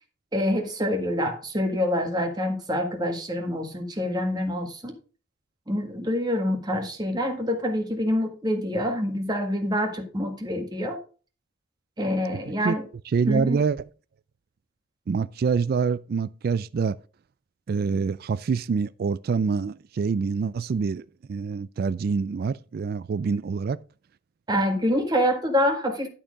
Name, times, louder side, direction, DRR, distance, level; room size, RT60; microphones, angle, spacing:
voice 1, 0.3-4.9 5.7-11.0 12.0-12.8 13.3-13.6 24.5-26.1, equal, 20° right, 1.7 m, -26 dB
voice 2, 13.1-13.8 15.1-17.0 17.7-23.8, right 5 dB, 50° right, 0.3 m, -26 dB
11.5 x 4.4 x 5.1 m
head